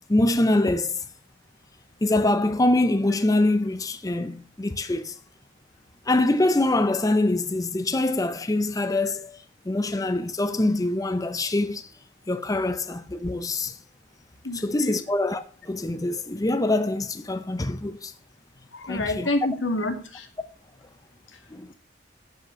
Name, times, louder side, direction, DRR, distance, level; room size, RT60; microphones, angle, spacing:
voice 1, 0.1-1.1 2.0-5.2 6.1-11.9 12.3-13.8 14.5-18.1 18.9-19.3 21.5-21.7, left 2 dB, 20° left, 0.6 m, -24 dB
voice 2, 14.4-15.0 18.7-20.3, left 2 dB, 85° left, 2.1 m, -28 dB
12.0 x 5.6 x 6.7 m
head